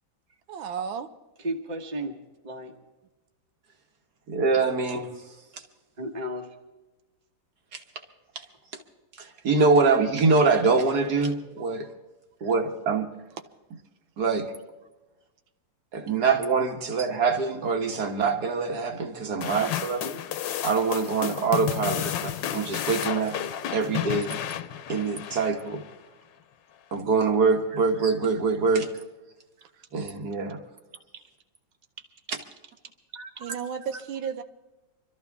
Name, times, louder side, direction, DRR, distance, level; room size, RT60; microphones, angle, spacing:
voice 1, 0.5-1.1 29.6-29.8 33.4-34.4, right 7 dB, 85° right, 1.6 m, -33 dB
voice 2, 1.4-2.1 2.4-2.7 6.0-6.5 11.6-11.7 22.0-22.1 33.1-33.4, right 1 dB, 25° right, 1.4 m, -34 dB
voice 3, 4.3-5.1 5.5-5.6 7.7-7.8 8.4-8.5 8.7-8.8 9.2-11.9 12.4-13.1 14.2-14.5 15.9-20.2 20.6-23.4 23.7-24.4 24.9-25.8 26.9-28.9 29.9-30.6, right 4 dB, 55° right, 1.9 m, -24 dB
sound 1, 19.4-25.9, left 10 dB, 75° left, 1.4 m, -32 dB
24.5 x 13.5 x 3.6 m
omnidirectional pair, 2.1 m